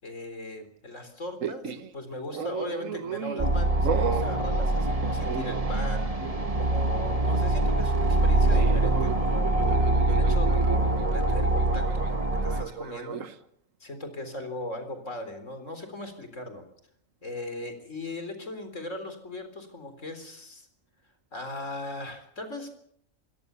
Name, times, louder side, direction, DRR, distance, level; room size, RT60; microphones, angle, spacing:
voice 1, 0.0-6.1 6.6-9.5 10.1-13.2 13.8-16.6 17.2-20.7 21.3-22.7, left 1 dB, 70° left, 8 dB, 4.3 m, -38 dB
sound 1, 1.4-1.9 2.3-3.5 3.8-4.3 5.0-5.9 6.2-6.5 8.5-13.3, right 7 dB, 75° right, 1.6 m, -34 dB
sound 2, 3.4-12.6, right 2 dB, 25° right, 2.0 m, -24 dB
28.0 x 17.0 x 6.9 m, 0.68 s
omnidirectional pair, 1.4 m